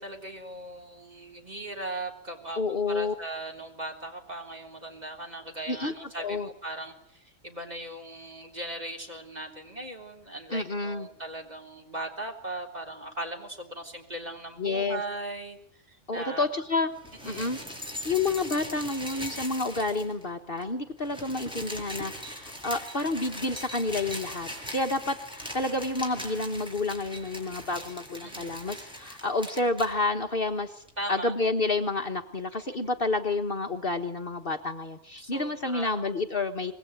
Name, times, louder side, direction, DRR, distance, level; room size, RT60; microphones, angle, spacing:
voice 1, 0.0-16.5 17.2-17.5 28.2-28.6 31.0-31.4 32.5-32.9 35.2-36.0, right 1 dB, 30° right, 3 dB, 3.9 m, -39 dB
voice 2, 2.6-3.1 5.7-6.5 10.5-11.1 14.6-15.0 16.1-16.9 17.2-17.6 18.0-36.7, left 3 dB, 45° left, 6 dB, 1.5 m, -29 dB
sound 1, 17.0-20.3 20.6-20.7 20.9-29.9 30.9-31.0, equal, 5° right, 7.3 m, -40 dB
25.5 x 21.0 x 9.3 m, 0.68 s
omnidirectional pair, 1.4 m